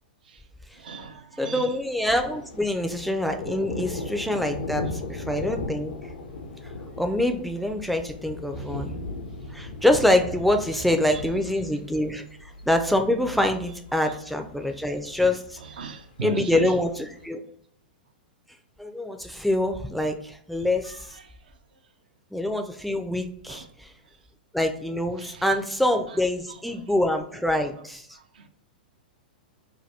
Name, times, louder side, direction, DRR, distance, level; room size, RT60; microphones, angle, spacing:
voice 1, 0.7-1.9 3.8-3.9 8.6-8.8 10.7-11.8 13.6-14.2 15.6-16.8 20.8-21.3 23.5-23.7 25.2-26.8 27.8-27.9 28.3-28.5, right 4 dB, 75° right, 0.4 m, -40 dB
voice 2, 1.4-5.9 7.0-9.0 9.5-12.2 12.7-15.6 16.2-17.4 18.8-21.1 22.3-23.9 24.5-28.1, left 1 dB, ahead, 0.3 m, -25 dB
Thunder, 1.7-17.3, left 2 dB, 75° left, 0.5 m, -38 dB
2.7 x 2.2 x 3.3 m
hypercardioid pair, 105°, 5 cm